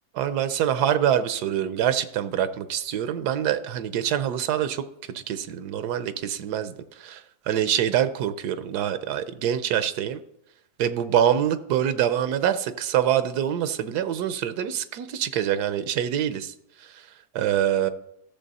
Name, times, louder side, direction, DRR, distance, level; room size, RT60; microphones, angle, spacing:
voice 1, 0.1-4.8 5.1-10.2 10.8-17.1 17.3-17.9, right 10 dB, 80° right, 12 dB, 1.2 m, -25 dB
13.5 x 6.9 x 4.1 m, 0.79 s
omnidirectional pair, 1.7 m